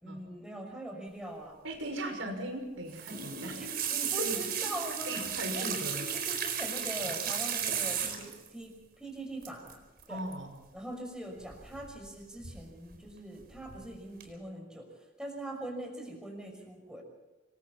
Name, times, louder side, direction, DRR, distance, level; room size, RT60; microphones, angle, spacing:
voice 1, 0.0-1.6 3.6-5.2 5.5-5.7 6.1-10.2 10.7-14.9 15.2-17.0, right 1 dB, 5° right, 2 dB, 5.9 m, -42 dB
voice 2, 1.6-3.6 4.2-4.4 5.1-6.1 7.0-7.1 10.1-10.5, right 1 dB, 85° right, 4 dB, 6.0 m, -38 dB
sound 1, 2.9-8.5 9.4-9.7 10.0-10.3 11.5-12.1 12.4-13.0 13.4-13.8 14.2-14.3, right 8 dB, 55° right, 4.4 m, -34 dB
27.0 x 22.5 x 4.3 m, 1.1 s
head